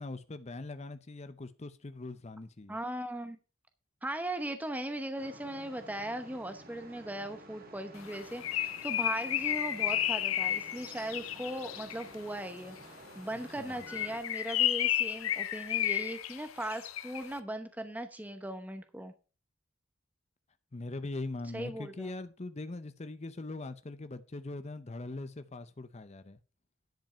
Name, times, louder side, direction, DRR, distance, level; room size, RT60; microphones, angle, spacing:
voice 1, 0.0-2.8 13.6-13.8 20.7-26.4, left 2 dB, 30° left, 0.6 m, -41 dB
voice 2, 2.7-3.4 4.0-19.1 21.5-22.1, right 1 dB, 10° right, 0.8 m, -38 dB
sound 1, 5.2-14.2, right 1 dB, 45° right, 1.7 m, -52 dB
Bird, 8.0-12.1 13.8-17.3, left 11 dB, 80° left, 0.6 m, -32 dB
10.5 x 5.3 x 5.6 m
head